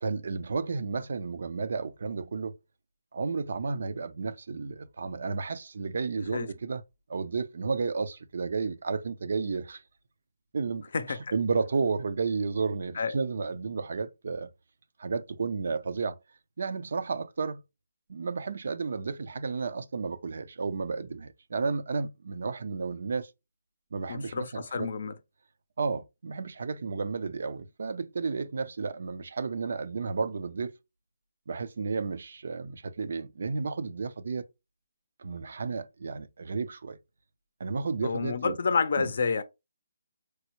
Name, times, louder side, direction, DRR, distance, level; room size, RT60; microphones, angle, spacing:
voice 1, 0.0-2.5 3.1-6.8 7.1-9.8 10.5-14.5 15.0-16.2 16.6-17.6 18.1-23.3 23.9-24.9 25.8-30.7 31.5-34.5 35.2-37.0 37.6-38.6 39.0-39.1, right 4 dB, 60° right, 0.5 m, -32 dB
voice 2, 10.9-11.3 12.9-13.1 24.1-25.2 38.0-39.4, left 5 dB, 55° left, 0.5 m, -29 dB
4.5 x 2.1 x 2.9 m
hypercardioid pair, 160°, 0 cm